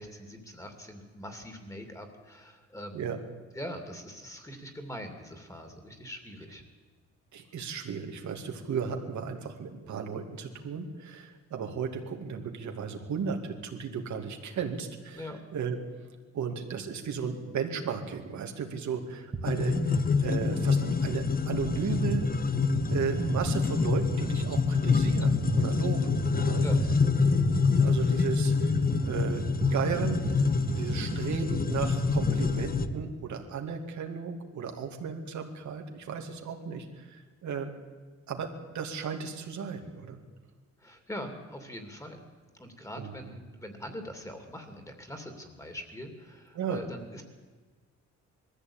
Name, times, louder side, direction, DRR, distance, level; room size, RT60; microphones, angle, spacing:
voice 1, 0.0-3.1 3.5-6.6 15.1-15.4 26.6-26.8 40.8-42.2 42.6-47.2, equal, 10° left, 6 dB, 2.7 m, -42 dB
voice 2, 7.3-15.8 16.3-22.2 22.9-26.6 27.5-28.8 29.0-29.4 29.7-37.7 38.3-38.5 38.7-40.2 43.0-43.1 46.5-46.8, right 6 dB, 80° right, 3 dB, 2.4 m, -35 dB
sound 1, 19.3-19.5 19.7-33.0, right 4 dB, 30° right, 1.7 m, -35 dB
sound 2, 19.4-32.9, left 5 dB, 30° left, 1.0 m, -27 dB
21.0 x 14.5 x 8.9 m, 1.4 s
cardioid pair, 130°, 29 cm